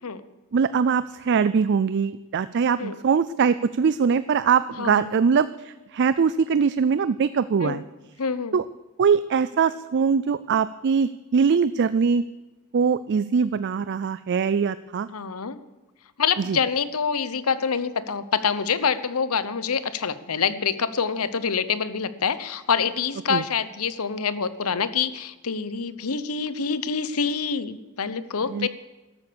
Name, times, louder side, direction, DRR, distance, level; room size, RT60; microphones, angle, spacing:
voice 1, 0.5-7.8 8.5-8.6 9.0-12.2 12.7-15.1 16.5-16.6 23.3-23.4 28.5-28.7, right 6 dB, 50° right, 15 dB, 0.4 m, -22 dB
voice 2, 4.8-5.2 7.6-7.8 8.2-8.5 15.1-15.6 16.2-28.7, left 6 dB, 75° left, 14 dB, 0.9 m, -26 dB
14.0 x 12.5 x 6.9 m, 1.1 s
head